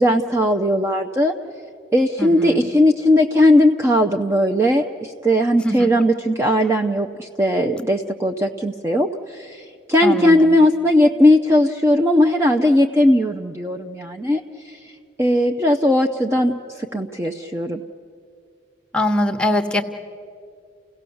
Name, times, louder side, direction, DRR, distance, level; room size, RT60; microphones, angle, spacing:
voice 1, 0.0-1.3 1.9-14.4 15.2-17.8, left 1 dB, 15° right, 3 dB, 0.6 m, -18 dB
voice 2, 2.2-2.7 5.6-5.9 10.0-10.6 18.9-19.8, left 1 dB, 5° left, 7 dB, 1.1 m, -22 dB
30.0 x 17.0 x 7.0 m, 2.4 s
head